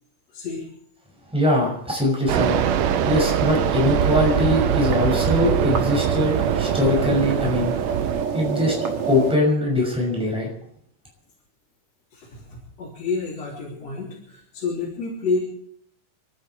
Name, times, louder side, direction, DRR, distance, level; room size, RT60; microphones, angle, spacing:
voice 1, 0.3-0.7 12.1-15.4, left 4 dB, 45° left, -5 dB, 4.3 m, -29 dB
voice 2, 1.3-7.7 8.3-8.7 9.1-10.5, left 1 dB, ahead, -1 dB, 5.8 m, -22 dB
Fixed-wing aircraft airplane, 2.3-8.3, right 10 dB, 80° right, 2.5 m, -24 dB
sound 1, 2.4-9.3, right 6 dB, 50° right, 2.0 m, -26 dB
29.5 x 10.5 x 4.6 m, 0.68 s
omnidirectional pair, 4.2 m